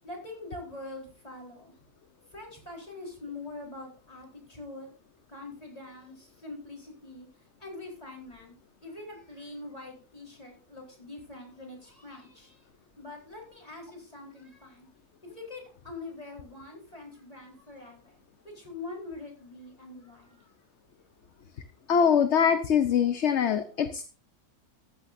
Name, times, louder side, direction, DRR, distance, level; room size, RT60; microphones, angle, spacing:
voice 1, 0.0-1.7 2.3-4.9 5.3-7.3 7.6-12.7 13.0-14.9 15.2-18.2 18.4-20.5, left 2 dB, 25° left, -1 dB, 4.4 m, -44 dB
voice 2, 21.9-24.0, left 7 dB, 55° left, 9 dB, 1.0 m, -23 dB
14.5 x 12.0 x 2.7 m, 0.38 s
omnidirectional pair, 1.6 m